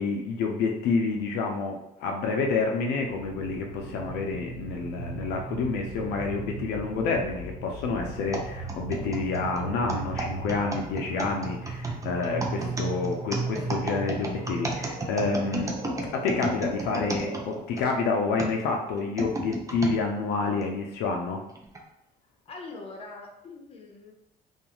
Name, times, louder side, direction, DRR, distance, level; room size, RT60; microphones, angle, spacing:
voice 1, 0.0-15.8 16.1-21.4, left 4 dB, 85° left, 1 dB, 0.5 m, -28 dB
sound 1, 3.1-17.6, right 3 dB, 75° right, 1.4 m, -37 dB
sound 2, 8.3-17.9 18.4-20.0 20.6-20.7 21.6-21.8, right 2 dB, 20° right, 0.5 m, -33 dB
voice 2, 22.5-24.1, left 3 dB, 35° left, 1 dB, 0.6 m, -42 dB
2.5 x 2.3 x 2.9 m, 0.81 s
cardioid pair, 110°, 17 cm